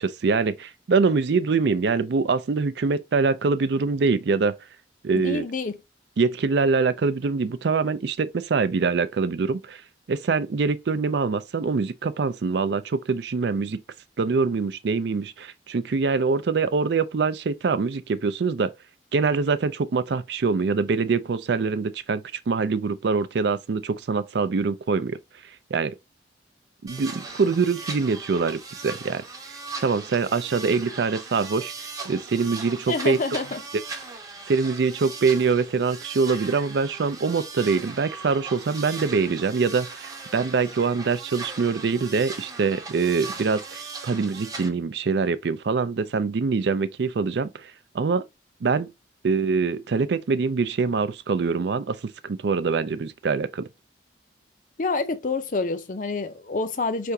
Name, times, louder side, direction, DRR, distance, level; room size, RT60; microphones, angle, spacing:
voice 1, 0.0-4.6 5.0-5.4 6.2-9.8 10.1-13.8 14.2-18.7 19.1-25.2 25.7-25.9 26.8-29.2 29.8-33.2 34.5-48.3 48.6-48.9 49.2-53.7, right 4 dB, 65° right, 0.4 m, -24 dB
voice 2, 5.2-5.8 32.9-33.6 54.8-57.1, left 3 dB, 45° left, 0.5 m, -27 dB
sound 1, 26.9-44.7, right 4 dB, 20° right, 0.7 m, -38 dB
4.7 x 3.5 x 2.7 m
head